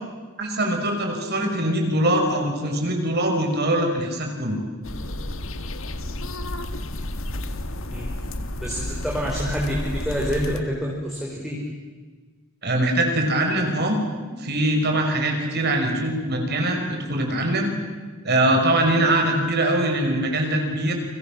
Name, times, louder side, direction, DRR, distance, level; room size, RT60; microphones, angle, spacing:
voice 1, 0.4-4.6 12.6-14.0 14.4-17.7 18.2-20.9, right 1 dB, 50° right, 2 dB, 5.9 m, -22 dB
sound 1, 4.8-10.6, left 1 dB, 65° left, 1.8 m, -31 dB
voice 2, 8.6-11.6, equal, ahead, -4 dB, 4.8 m, -27 dB
30.0 x 25.5 x 7.6 m, 1.4 s
head